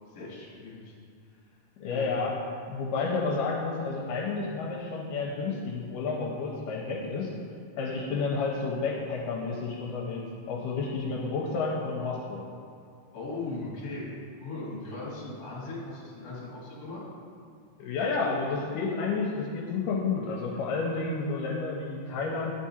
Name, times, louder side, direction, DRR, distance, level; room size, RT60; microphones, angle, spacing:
voice 1, 0.1-0.9 1.8-2.2 13.1-14.0 14.4-17.0, left 2 dB, 35° left, -6 dB, 1.6 m, -38 dB
voice 2, 1.8-2.4 2.7-7.3 7.8-12.5 17.8-22.5, left 4 dB, 80° left, -2 dB, 2.1 m, -30 dB
10.5 x 3.6 x 4.2 m, 2.3 s
omnidirectional pair, 4.0 m